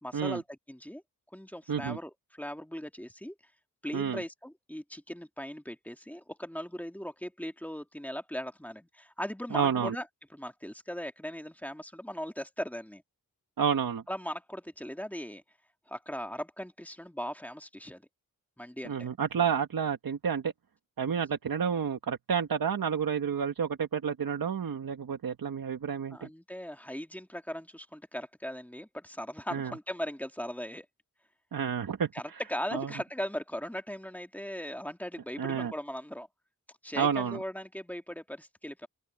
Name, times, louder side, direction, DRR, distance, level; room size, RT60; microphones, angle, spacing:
voice 1, 0.0-1.0 1.3-3.4 3.8-10.1 10.3-13.0 14.1-15.4 15.9-18.0 18.6-19.1 26.1-30.9 32.1-36.3 36.8-38.9, equal, 5° left, 2.1 m, -39 dB
voice 2, 9.5-9.9 13.6-14.0 18.8-20.5 21.0-26.3 29.5-29.7 31.5-32.4 32.7-32.9 35.4-35.7 36.9-37.4, right 7 dB, 80° right, 1.6 m, -30 dB
open air
wide cardioid pair, 75°, 34 cm